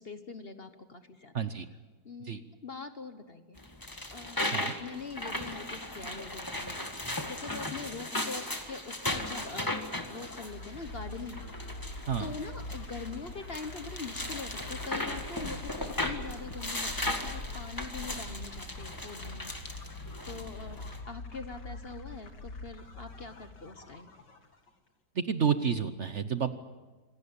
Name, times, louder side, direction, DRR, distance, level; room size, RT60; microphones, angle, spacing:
voice 1, 0.0-1.4 2.0-4.4 4.8-6.9 7.3-9.8 10.1-11.4 12.2-19.5 20.2-24.1, left 4 dB, 40° left, 9 dB, 1.2 m, -43 dB
voice 2, 1.3-1.7 2.3-2.4 4.5-4.7 12.1-12.3 25.2-26.6, right 7 dB, 50° right, 11 dB, 1.1 m, -30 dB
sound 1, 3.6-21.0, left 1 dB, 10° left, 1.8 m, -37 dB
sound 2, 9.0-24.7, left 2 dB, 85° left, 3.0 m, -44 dB
26.5 x 17.5 x 8.7 m, 1.3 s
omnidirectional pair, 1.8 m